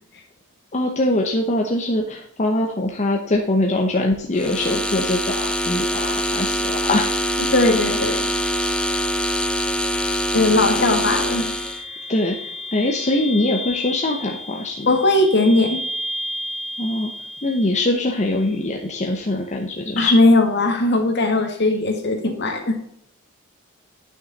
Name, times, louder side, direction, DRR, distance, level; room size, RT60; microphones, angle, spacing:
voice 1, 0.7-7.3 8.5-8.7 10.8-11.0 12.1-14.9 16.8-17.1 17.4-20.2, left 1 dB, 35° left, 1 dB, 0.9 m, -23 dB
sound 1, 4.4-11.8, equal, 5° left, 0.5 m, -24 dB
sound 2, 6.1-18.9, left 1 dB, 70° right, 2.8 m, -35 dB
voice 2, 7.5-8.3 10.3-11.5 14.9-15.8 20.0-22.8, left 2 dB, 55° left, 3 dB, 1.9 m, -18 dB
9.2 x 6.5 x 4.1 m, 0.72 s
head